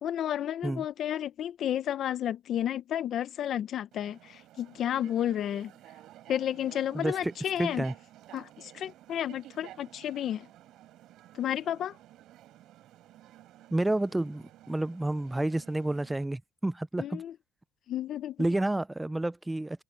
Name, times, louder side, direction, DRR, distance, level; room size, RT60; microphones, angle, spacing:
voice 1, 0.0-5.7 6.3-7.8 8.3-10.5 11.3-12.0 17.0-17.3 17.9-18.4, left 10 dB, 60° left, 1.2 m, -32 dB
sound 1, 3.9-16.2, right 14 dB, 75° right, 4.2 m, -53 dB
voice 2, 6.9-7.3 7.6-7.9 13.7-17.2 18.4-19.8, right 1 dB, 10° right, 0.6 m, -30 dB
supercardioid pair, 85°, 0 cm